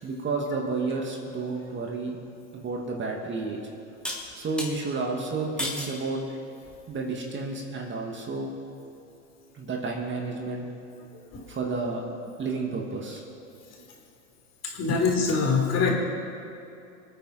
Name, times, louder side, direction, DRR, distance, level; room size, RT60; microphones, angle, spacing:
voice 1, 0.0-2.2 2.5-3.6 4.3-6.2 6.9-8.5 9.5-10.7 11.5-12.0 12.4-13.2, right 3 dB, 30° right, 0 dB, 2.3 m, -31 dB
sound 1, 2.7-2.8 4.0-4.7 5.6-6.0 6.6-7.0, left 1 dB, ahead, 3.0 m, -33 dB
voice 2, 11.1-11.4 14.6-15.9, left 5 dB, 40° left, 0 dB, 3.6 m, -24 dB
24.5 x 9.1 x 4.4 m, 2.7 s
hypercardioid pair, 95°, 39 cm